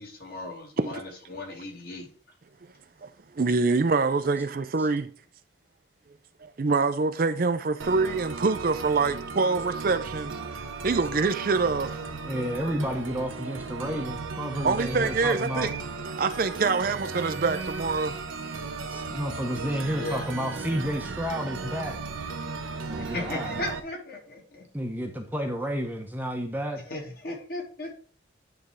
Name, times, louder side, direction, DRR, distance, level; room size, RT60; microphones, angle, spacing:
voice 1, 0.0-2.1 19.9-20.2 23.0-24.6 26.8-28.0, left 2 dB, 50° left, 2.5 m, -36 dB
voice 2, 3.3-5.1 6.4-10.4 10.8-12.0 14.6-15.7 16.2-18.2, right 4 dB, 45° right, 0.4 m, -25 dB
sound 1, 7.8-23.8, right 4 dB, 90° right, 0.8 m, -36 dB
voice 3, 12.2-15.7 18.9-22.0 22.9-23.6 24.7-26.8, equal, 10° right, 0.8 m, -31 dB
9.5 x 3.4 x 5.0 m
head